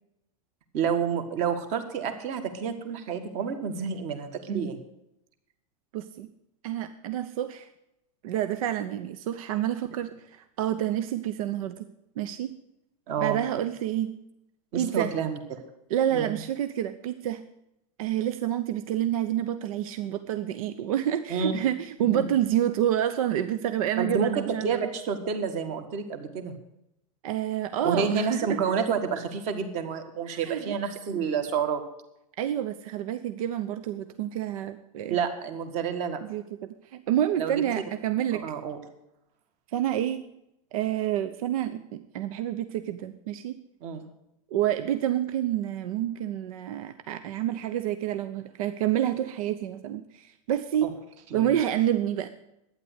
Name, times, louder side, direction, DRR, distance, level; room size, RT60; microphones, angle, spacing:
voice 1, 0.7-4.8 13.1-13.4 14.7-15.6 16.1-16.4 21.3-21.5 22.1-22.3 24.0-26.5 27.8-31.8 35.1-36.2 37.4-37.6 38.3-38.8 43.8-44.0 50.8-50.9 51.3-51.5, right 6 dB, 40° right, 8 dB, 1.7 m, -29 dB
voice 2, 5.9-6.3 6.6-7.7 8.2-11.9 12.2-12.5 13.2-14.1 14.7-15.1 15.9-17.4 18.0-24.9 27.2-28.7 30.3-30.8 32.4-35.2 36.2-38.4 39.7-40.2 40.7-43.6 44.5-50.9 51.3-52.3, right 11 dB, 80° right, 11 dB, 0.8 m, -28 dB
11.5 x 9.5 x 8.1 m, 0.86 s
supercardioid pair, 160°, 18 cm